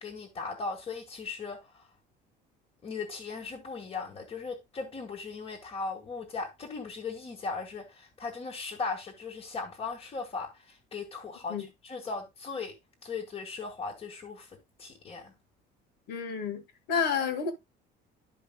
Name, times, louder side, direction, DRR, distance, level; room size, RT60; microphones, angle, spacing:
voice 1, 0.0-1.9 2.8-11.5 11.8-12.7 13.0-14.5 14.8-15.3, left 4 dB, 30° left, 1.8 m, -38 dB
voice 2, 16.1-16.6 16.9-17.5, left 6 dB, 70° left, 2.2 m, -29 dB
12.5 x 5.1 x 2.3 m
cardioid pair, 150°, 18 cm